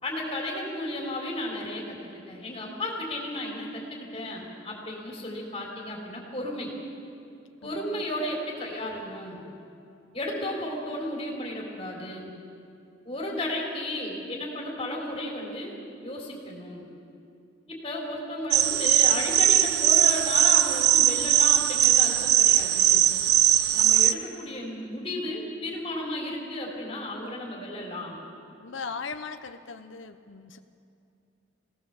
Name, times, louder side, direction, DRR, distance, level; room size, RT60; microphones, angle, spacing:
voice 1, 0.0-6.7 7.6-9.4 10.1-12.3 13.0-16.9 17.7-23.1 23.7-28.2, left 1 dB, 25° left, -3 dB, 3.8 m, -34 dB
voice 2, 7.6-8.0 28.6-30.6, left 5 dB, 80° left, 7 dB, 0.9 m, -38 dB
sound 1, 18.5-24.1, right 12 dB, 55° right, 0.6 m, -20 dB
24.0 x 17.5 x 7.2 m, 2.7 s
head